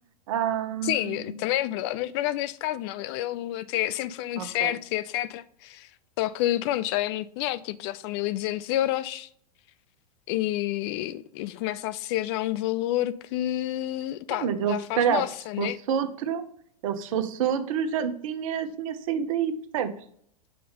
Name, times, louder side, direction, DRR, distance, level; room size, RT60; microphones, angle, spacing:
voice 1, 0.3-1.3 4.4-4.7 14.3-15.2 15.6-16.4 16.8-19.9, right 8 dB, 55° right, 0.9 m, -28 dB
voice 2, 0.8-5.9 6.2-9.3 10.3-15.8, left 14 dB, 40° left, 0.4 m, -29 dB
5.8 x 5.0 x 5.2 m
figure-of-eight pair, 100°, 20 cm